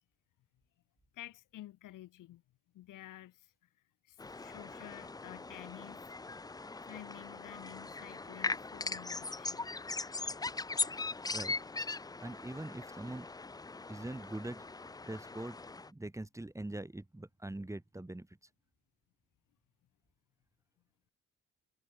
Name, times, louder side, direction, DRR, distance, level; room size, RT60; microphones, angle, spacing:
voice 1, 1.1-2.4 2.7-3.7 4.0-6.0 6.3-6.4 6.9-9.7, left 14 dB, 90° left, 2.2 m, -51 dB
sound 1, 4.2-15.9, left 3 dB, 15° left, 0.5 m, -40 dB
voice 2, 12.2-13.3 13.9-14.7 15.1-15.6 15.8-18.3, right 1 dB, 10° right, 1.4 m, -42 dB
cardioid pair, 85°, 31 cm